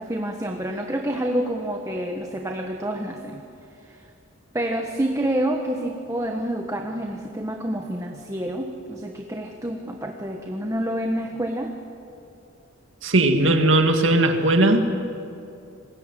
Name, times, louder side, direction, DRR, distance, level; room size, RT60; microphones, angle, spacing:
voice 1, 0.0-3.4 3.9-4.0 4.5-11.7, right 1 dB, 15° right, 3 dB, 1.4 m, -28 dB
voice 2, 13.0-14.9, right 2 dB, 65° right, 5 dB, 2.2 m, -18 dB
28.0 x 21.0 x 9.2 m, 2.6 s
head